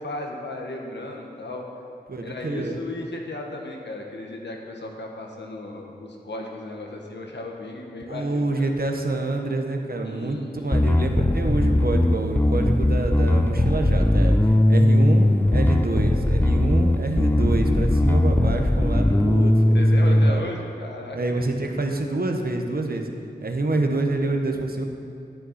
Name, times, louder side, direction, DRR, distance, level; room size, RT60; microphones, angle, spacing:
voice 1, 0.0-1.7 2.2-8.7 10.0-10.8 19.7-21.5 21.9-22.0, left 2 dB, 80° left, 1 dB, 1.3 m, -35 dB
voice 2, 2.1-2.7 8.1-20.5 21.1-23.1 23.4-24.8, right 2 dB, 55° right, 3 dB, 1.1 m, -27 dB
Bass guitar, 10.7-20.3, left 1 dB, 10° left, 0.5 m, -19 dB
9.8 x 9.5 x 4.2 m, 2.5 s
cardioid pair, 45°, 18 cm